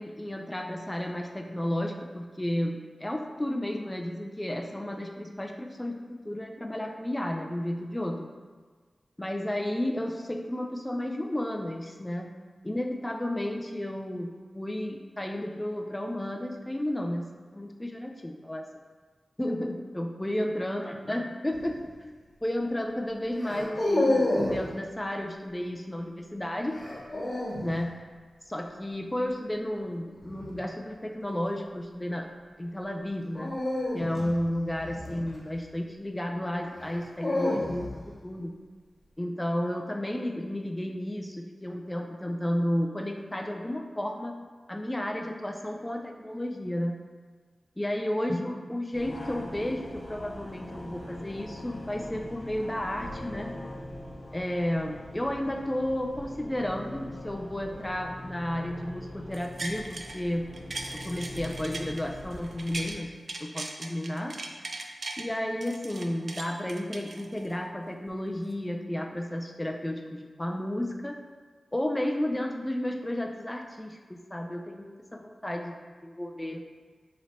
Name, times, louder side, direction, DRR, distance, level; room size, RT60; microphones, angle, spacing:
voice 1, 0.0-8.3 9.2-12.3 12.6-18.7 19.4-22.1 22.4-26.8 27.6-27.9 28.5-32.3 32.6-33.6 33.9-38.5 39.2-44.4 44.7-47.0 47.8-53.5 54.3-60.5 60.9-63.1 63.4-64.4 65.2-71.2 71.7-75.8 76.0-76.6, left 1 dB, 15° left, 3 dB, 0.3 m, -32 dB
sound 1, 21.5-21.9 23.4-24.6 26.7-27.7 30.2-30.6 33.3-35.7 36.8-38.1, left 1 dB, 35° left, 1.3 m, -29 dB
sound 2, 48.9-62.9, left 1 dB, 70° left, 0.6 m, -42 dB
sound 3, 59.3-60.2 60.5-63.0 63.3-65.2 65.6-67.6 68.1-68.2, right 2 dB, 60° right, 0.3 m, -39 dB
2.9 x 2.7 x 4.3 m, 1.5 s
cardioid pair, 60°, 0 cm